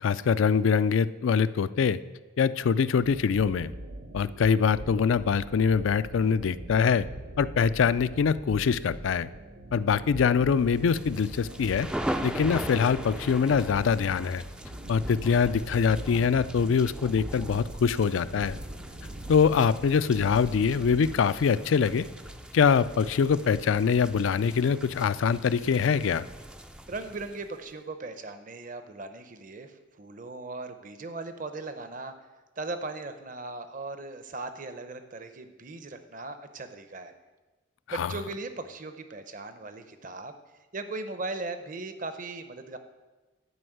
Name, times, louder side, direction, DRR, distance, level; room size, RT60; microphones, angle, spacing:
voice 1, 0.0-2.0 2.4-3.7 4.1-7.1 7.4-9.3 9.7-11.9 12.2-14.4 14.9-18.6 19.3-22.1 22.5-26.2 37.9-38.1, left 6 dB, 75° left, 15 dB, 0.4 m, -24 dB
sound 1, 3.0-21.5, right 1 dB, 90° right, 1.1 m, -43 dB
sound 2, 10.8-27.7, equal, 5° right, 0.3 m, -40 dB
sound 3, 14.3-14.6 14.9-16.3 16.7-18.1 18.4-19.8 20.1-21.5 21.8-23.2 23.5-24.2, right 1 dB, 65° right, 1.1 m, -49 dB
voice 2, 26.9-32.1 32.6-37.1 37.9-40.3 40.7-42.8, right 3 dB, 40° right, 9 dB, 0.7 m, -38 dB
11.0 x 5.3 x 7.8 m, 1.2 s
head